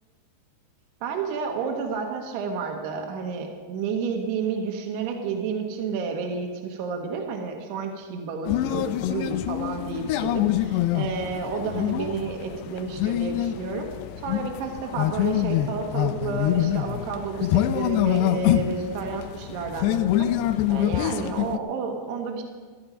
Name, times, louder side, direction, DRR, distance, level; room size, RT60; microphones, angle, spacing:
voice 1, 1.0-13.9 14.2-20.3 20.7-22.4, right 5 dB, 70° right, 2 dB, 3.3 m, -31 dB
sound 1, 8.5-21.6, left 13 dB, 80° left, 2.5 m, -26 dB
16.5 x 12.0 x 5.1 m, 1.5 s
omnidirectional pair, 5.1 m